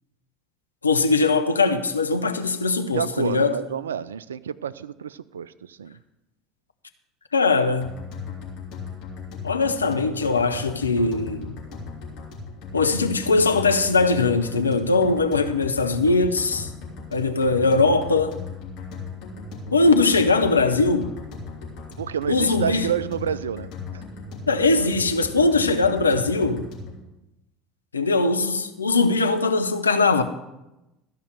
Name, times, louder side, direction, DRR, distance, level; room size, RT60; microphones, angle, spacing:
voice 1, 0.8-3.6 7.3-7.9 9.4-11.6 12.7-16.7 17.1-18.4 19.7-21.2 22.3-22.9 24.5-26.7 27.9-30.2, left 3 dB, 90° left, 0.6 m, -21 dB
voice 2, 2.9-6.0 22.0-24.0, right 8 dB, 80° right, 0.3 m, -29 dB
sound 1, 7.8-27.0, left 4 dB, 55° left, 3.0 m, -37 dB
13.5 x 5.5 x 7.5 m
figure-of-eight pair, 70°, 0 cm